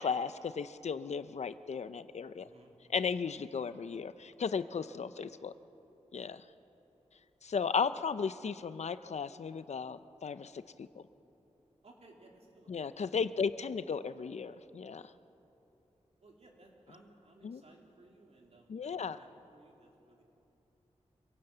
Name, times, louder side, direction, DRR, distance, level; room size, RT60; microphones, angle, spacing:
voice 1, 0.0-2.5 2.9-5.5 6.1-6.4 7.4-11.0 12.7-15.0 17.4-17.6 18.7-19.2, left 6 dB, 70° left, 13 dB, 0.7 m, -35 dB
voice 2, 2.4-2.7 11.8-12.8 13.9-14.0 16.2-20.2, right 2 dB, 60° right, 0 dB, 3.6 m, -60 dB
25.5 x 17.5 x 8.1 m, 3.0 s
wide cardioid pair, 95°, 12 cm